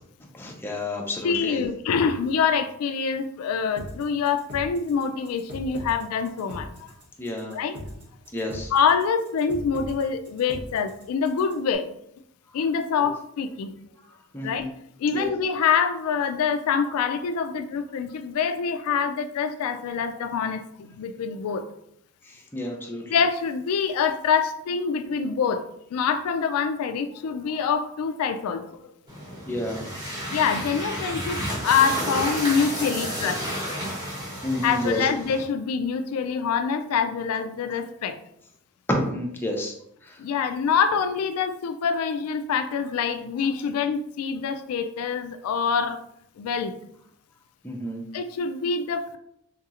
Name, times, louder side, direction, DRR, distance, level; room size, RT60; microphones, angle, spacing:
voice 1, 0.3-1.6 7.2-7.6 8.3-8.7 14.3-14.7 15.1-15.3 22.2-23.1 29.5-29.9 34.4-35.0 38.9-39.7 40.0-40.2 47.6-48.0, left 1 dB, 10° left, 0 dB, 0.5 m, -30 dB
voice 2, 1.2-6.9 7.5-7.8 8.7-11.9 12.5-13.7 14.4-14.7 15.0-21.7 23.1-25.6 25.9-28.8 30.3-33.4 34.6-38.2 40.2-46.0 46.4-46.8 48.1-49.2, left 6 dB, 85° left, 9 dB, 0.3 m, -25 dB
sound 1, 3.8-11.7, left 1 dB, 80° right, 1.2 m, -40 dB
sound 2, 29.1-35.4, equal, 20° right, 0.9 m, -31 dB
3.9 x 2.8 x 2.4 m, 0.73 s
head